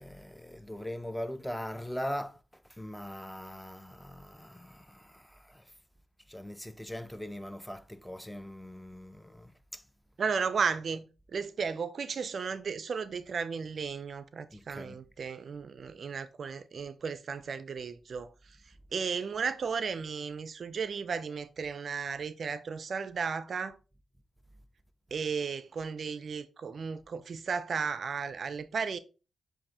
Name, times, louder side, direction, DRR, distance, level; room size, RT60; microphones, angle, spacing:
voice 1, 0.0-2.4 2.8-5.6 6.3-9.8 14.5-15.0, equal, 5° left, 0.5 m, -41 dB
voice 2, 10.2-11.1 11.3-18.3 18.9-23.8 25.1-29.0, right 5 dB, 60° right, 0.3 m, -34 dB
7.4 x 2.5 x 2.8 m
supercardioid pair, 55°, 0 cm